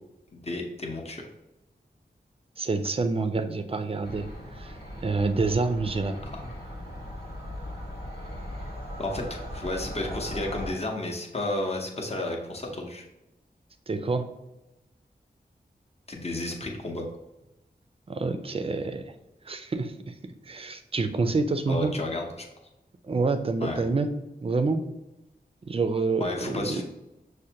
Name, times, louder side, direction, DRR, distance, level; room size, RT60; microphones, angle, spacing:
voice 1, 0.3-1.2 6.2-6.5 9.0-13.0 16.1-17.1 21.7-22.3 23.6-23.8 26.2-26.8, left 2 dB, 40° left, 0 dB, 0.7 m, -32 dB
voice 2, 2.6-4.3 4.6-4.7 5.0-6.2 13.9-14.3 18.1-19.0 19.5-19.9 20.5-21.9 23.1-24.1 24.4-24.8 25.7-26.8, right 3 dB, 35° right, 8 dB, 0.4 m, -27 dB
sound 1, 4.0-10.7, equal, 90° left, 1.3 m, -38 dB
6.3 x 2.1 x 2.7 m, 0.96 s
wide cardioid pair, 85°, 17 cm